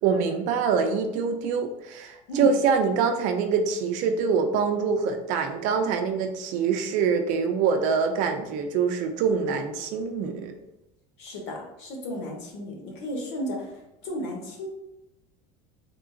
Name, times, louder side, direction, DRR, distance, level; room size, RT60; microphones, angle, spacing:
voice 1, 0.0-10.5, right 5 dB, 55° right, 6 dB, 0.5 m, -25 dB
voice 2, 11.2-14.7, equal, 90° left, 0 dB, 1.1 m, -34 dB
3.6 x 2.4 x 3.8 m, 0.87 s
cardioid pair, 155°, 15 cm